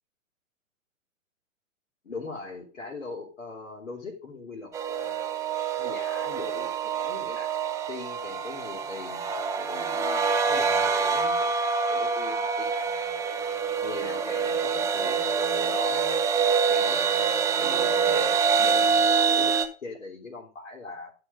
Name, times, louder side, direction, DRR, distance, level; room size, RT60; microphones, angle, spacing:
voice 1, 2.0-5.3 5.8-9.2 9.6-13.3 13.8-16.2 16.7-17.2 17.5-21.1, left 3 dB, 65° left, -4 dB, 3.3 m, -41 dB
sound 1, 4.7-19.7, right 5 dB, 5° right, 0.7 m, -26 dB
13.0 x 5.0 x 5.2 m, 0.37 s
figure-of-eight pair, 115°, 40 cm